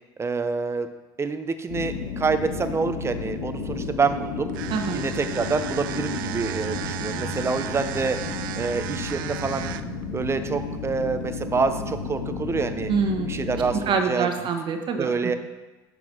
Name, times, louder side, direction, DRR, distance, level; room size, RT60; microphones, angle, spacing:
voice 1, 0.2-0.9 1.2-4.5 4.9-8.2 8.6-9.7 10.1-12.9 13.3-14.3 15.0-15.4, right 4 dB, 25° right, 9 dB, 0.8 m, -27 dB
sound 1, 1.7-13.9, left 4 dB, 75° left, 2.0 m, -32 dB
sound 2, 4.5-10.0, right 12 dB, 90° right, 0.4 m, -34 dB
voice 2, 12.9-13.3 13.9-15.4, right 5 dB, 50° right, 4 dB, 1.3 m, -25 dB
9.8 x 3.9 x 6.1 m, 1.2 s
supercardioid pair, 85°, 11 cm